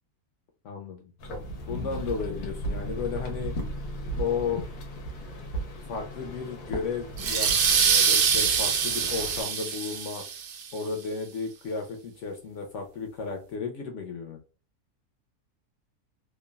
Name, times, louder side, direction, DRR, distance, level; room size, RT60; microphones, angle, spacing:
voice 1, 0.6-1.1 1.7-3.5 4.2-4.6 5.9-10.2 10.7-14.4, left 5 dB, 65° left, 3 dB, 0.7 m, -33 dB
sound 1, 1.2-9.4, right 1 dB, 85° left, 1.3 m, -36 dB
sound 2, 7.2-10.6, right 6 dB, 90° right, 0.4 m, -24 dB
3.1 x 2.2 x 2.2 m, 0.34 s
omnidirectional pair, 1.6 m